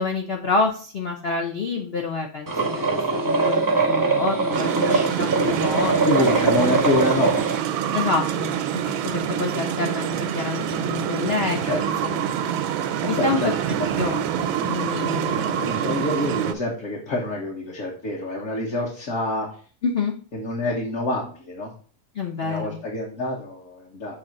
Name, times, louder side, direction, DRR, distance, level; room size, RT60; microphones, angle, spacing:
voice 1, 0.0-6.3 7.9-8.5 8.8-8.9 9.3-12.7 13.1-13.5 14.0-15.7 19.8-20.1 22.1-22.8, left 4 dB, 75° left, 1 dB, 0.5 m, -28 dB
sound 1, 2.5-7.6, right 3 dB, 25° right, 0.4 m, -22 dB
sound 2, 4.5-16.5, right 9 dB, 85° right, 1.4 m, -26 dB
voice 2, 4.9-5.4 6.1-7.4 11.6-11.8 12.1-12.2 13.0-13.5 13.7-13.9 15.3-19.5 20.3-21.7 22.4-24.2, left 2 dB, 45° left, -3 dB, 1.4 m, -27 dB
7.5 x 2.8 x 5.2 m, 0.42 s
omnidirectional pair, 2.1 m